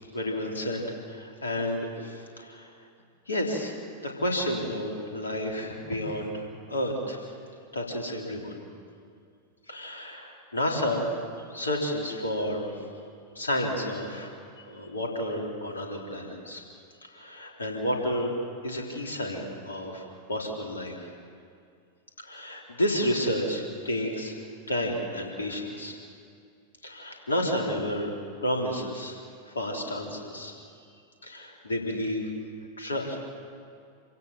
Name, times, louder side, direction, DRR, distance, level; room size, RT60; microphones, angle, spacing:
voice 1, 0.1-2.7 3.3-7.3 7.7-8.6 9.7-11.2 11.5-12.9 13.4-14.3 14.6-16.6 17.0-18.3 18.6-21.1 22.2-24.4 24.7-25.9 26.8-28.1 28.4-29.2 29.5-30.6 31.2-32.3 32.8-33.2, equal, 75° left, 0 dB, 3.5 m, -31 dB
27.5 x 16.5 x 7.4 m, 2.3 s
figure-of-eight pair, 90°, 0 cm